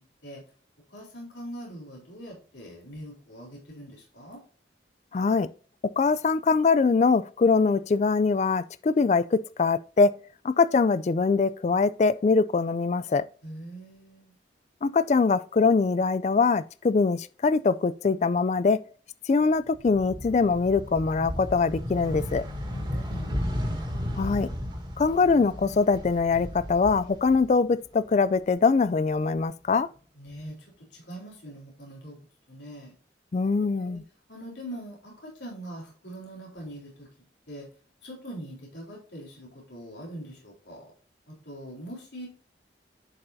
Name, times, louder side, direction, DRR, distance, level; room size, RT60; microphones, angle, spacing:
voice 1, 0.9-4.4 13.4-14.3 22.7-23.5 30.1-32.9 33.6-34.0 34.3-37.1 37.5-37.7 38.0-40.9 41.3-42.3, right 1 dB, 85° left, 3.6 m, -42 dB
voice 2, 5.1-5.5 6.0-10.1 10.4-13.2 14.8-18.8 19.3-22.4 24.2-24.5 25.0-29.9 33.3-34.0, left 4 dB, 40° left, 0.3 m, -23 dB
sound 1, 19.7-27.9 28.2-29.4, equal, 25° right, 2.0 m, -34 dB
10.5 x 5.6 x 2.7 m
head